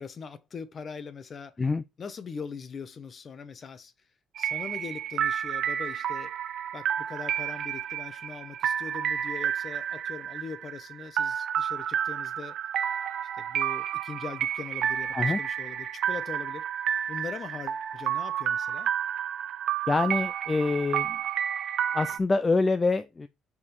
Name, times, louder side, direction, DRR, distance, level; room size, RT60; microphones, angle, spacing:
voice 1, 0.0-1.5 2.0-3.9 4.4-6.3 6.7-12.5 13.4-16.7 17.1-18.9, left 5 dB, 40° left, 1.0 m, -41 dB
sound 1, 4.4-22.2, right 9 dB, 60° right, 0.6 m, -30 dB
voice 2, 19.9-21.2 21.9-23.3, left 3 dB, 20° left, 0.5 m, -25 dB
4.8 x 4.7 x 5.5 m
cardioid pair, 105°, 0 cm